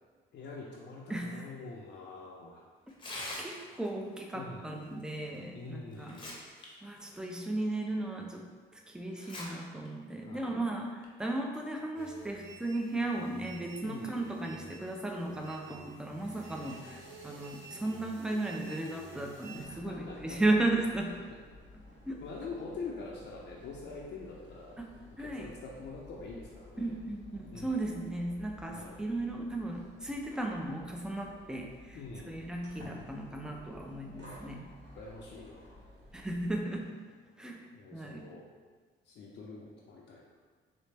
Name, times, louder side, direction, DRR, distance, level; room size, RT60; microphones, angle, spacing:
voice 1, 0.3-2.7 4.3-5.0 5.5-6.4 10.2-10.7 13.8-14.4 19.8-20.6 22.2-24.8 25.2-26.9 27.5-28.1 28.7-29.0 31.9-32.4 34.2-35.8 37.7-38.5 39.0-40.2, left 3 dB, 65° left, -4 dB, 0.5 m, -45 dB
voice 2, 1.1-1.4 3.4-6.2 6.8-8.5 8.7-21.1 22.1-22.2 24.8-24.9 25.2-25.5 26.8-32.0 32.3-34.6 36.1-36.9 37.4-37.6 37.9-38.3, right 2 dB, 5° right, 1 dB, 0.4 m, -35 dB
Tearing, 2.9-3.9 5.3-5.4 5.9-6.7 7.0-7.1 7.8-7.9 9.1-9.4 9.8-9.9 10.8-11.0, left 2 dB, 25° left, 0.7 m, -42 dB
sound 1, 12.0-19.7, right 2 dB, 85° right, 0.8 m, -51 dB
sound 2, 19.5-36.8, left 1 dB, 60° right, 1.2 m, -54 dB
4.1 x 2.0 x 3.3 m, 1.5 s
cardioid pair, 90°, 20 cm